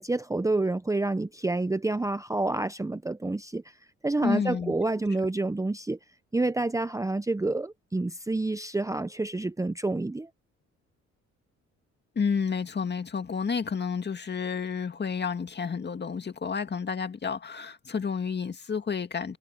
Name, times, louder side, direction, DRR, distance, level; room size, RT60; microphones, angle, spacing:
voice 1, 0.0-3.6 4.0-6.0 6.3-10.3, right 2 dB, 10° right, 0.8 m, -28 dB
voice 2, 4.2-4.7 12.2-19.4, left 6 dB, 35° left, 2.0 m, -30 dB
cardioid pair, 90°, 30 cm